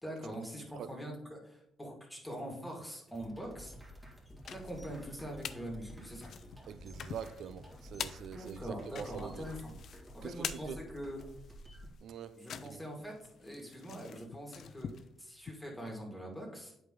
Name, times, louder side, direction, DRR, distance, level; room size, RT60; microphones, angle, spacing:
voice 1, 0.0-3.7 4.5-6.3 8.3-9.7 10.1-11.2 12.3-13.1 13.4-14.9 15.2-16.7, equal, 5° left, 2.1 m, -43 dB
sound 1, 3.1-12.0, equal, 15° right, 2.0 m, -51 dB
sound 2, 4.1-5.6 6.0-15.5, left 8 dB, 65° left, 0.4 m, -46 dB
voice 2, 6.7-9.4 10.2-10.8 12.0-12.8, right 8 dB, 70° right, 0.5 m, -45 dB
8.2 x 5.1 x 3.8 m
cardioid pair, 90°, 0 cm